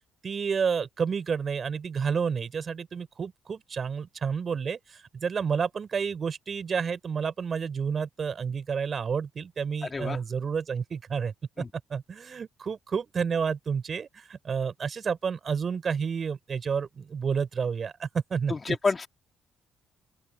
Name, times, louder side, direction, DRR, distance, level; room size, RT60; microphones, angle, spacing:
voice 1, 0.2-11.6 11.9-18.8, right 6 dB, 45° right, 4.1 m, -30 dB
voice 2, 18.5-19.1, left 4 dB, 30° left, 2.6 m, -28 dB
open air
hypercardioid pair, 45°, 0 cm